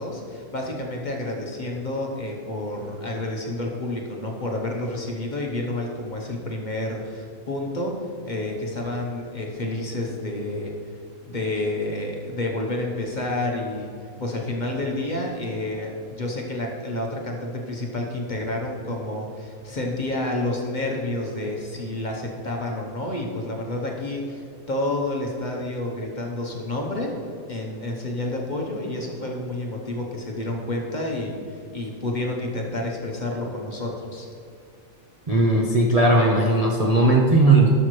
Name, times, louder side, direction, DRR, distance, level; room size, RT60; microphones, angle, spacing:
voice 1, 0.0-7.9 8.2-10.7 11.2-13.9 14.2-27.1 27.5-34.3, left 2 dB, 35° left, 0 dB, 1.0 m, -29 dB
voice 2, 35.3-37.7, right 2 dB, 35° right, -2 dB, 0.6 m, -17 dB
12.0 x 6.8 x 3.1 m, 2.5 s
omnidirectional pair, 1.5 m